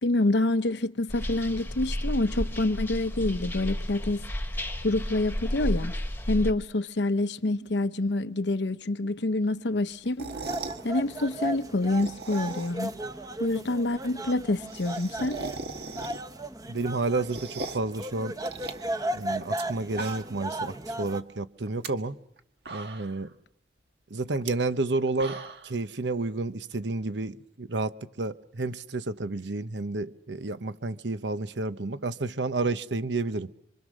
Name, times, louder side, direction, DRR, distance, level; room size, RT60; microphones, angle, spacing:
voice 1, 0.0-4.2 4.8-5.9 6.3-10.3 10.8-12.9 13.4-15.4, left 2 dB, 80° left, 0.9 m, -27 dB
sound 1, 1.1-6.5, equal, 10° left, 1.3 m, -32 dB
sound 2, 10.1-10.8 11.8-12.9 13.3-13.4 13.6-13.7 13.9-14.0 14.3-16.5 16.8-17.9 18.4-19.6 19.9-20.5 20.8-20.9 21.6-21.9 22.4-22.5 22.7-23.3 24.3-24.5 24.9-25.7, right 3 dB, 65° right, 1.7 m, -39 dB
sound 3, 10.3-21.2, right 1 dB, 20° right, 1.0 m, -36 dB
voice 2, 16.7-18.4 19.1-22.2 22.7-23.3 24.1-33.5, right 3 dB, 90° right, 1.0 m, -30 dB
26.0 x 25.5 x 6.4 m
head